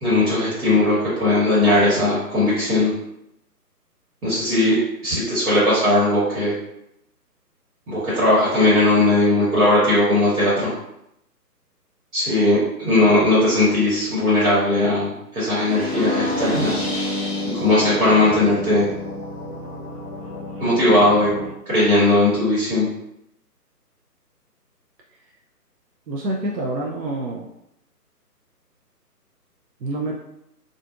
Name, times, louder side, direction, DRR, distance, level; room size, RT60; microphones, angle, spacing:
voice 1, 0.0-2.9 4.2-4.8 5.0-6.5 7.9-10.7 12.1-16.9 17.5-18.9 20.6-21.3 21.7-22.9, left 2 dB, 60° right, -8 dB, 1.4 m, -18 dB
sound 1, 15.5-21.5, left 1 dB, ahead, 0.8 m, -29 dB
voice 2, 26.1-27.5 29.8-30.1, right 2 dB, 85° right, -1 dB, 0.6 m, -27 dB
2.5 x 2.4 x 2.4 m, 0.81 s
figure-of-eight pair, 145°, 48 cm